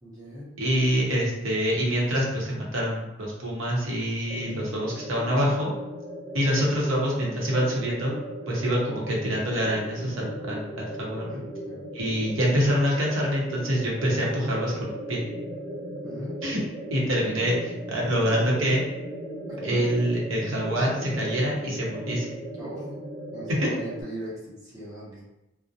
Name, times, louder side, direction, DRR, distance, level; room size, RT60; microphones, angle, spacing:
voice 1, 0.0-0.5 11.3-11.8 16.0-16.3 19.7-19.8 22.6-22.8 23.3-25.2, right 1 dB, 20° right, -9 dB, 0.8 m, -39 dB
voice 2, 0.6-5.7 6.3-8.1 8.5-11.4 11.9-15.2 16.4-16.6 16.9-18.8 19.6-22.3, equal, 85° right, -3 dB, 0.7 m, -26 dB
sound 1, 4.3-24.0, equal, 25° left, 1.0 m, -37 dB
2.4 x 2.0 x 2.6 m, 0.93 s
head